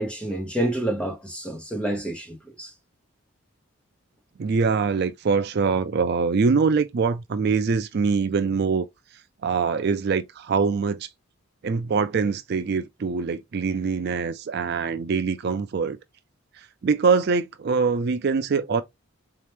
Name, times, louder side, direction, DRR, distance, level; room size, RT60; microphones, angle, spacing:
voice 1, 0.0-2.7, right 1 dB, 5° left, 0.9 m, -28 dB
voice 2, 4.4-8.9 9.4-11.1 11.6-16.0 16.5-18.8, right 5 dB, 50° right, 0.4 m, -23 dB
4.1 x 2.9 x 3.3 m
head